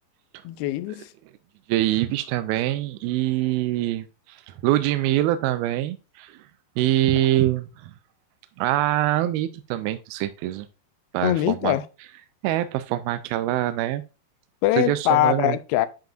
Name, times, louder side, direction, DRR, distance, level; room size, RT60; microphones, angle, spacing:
voice 1, 0.4-1.1 11.2-11.8 14.6-15.9, left 14 dB, 80° left, 2.5 m, -22 dB
voice 2, 1.7-6.4 6.8-7.9 8.6-10.7 11.1-11.8 12.4-14.0 14.8-15.6, right 14 dB, 80° right, 2.3 m, -24 dB
10.5 x 5.2 x 2.5 m
omnidirectional pair, 4.6 m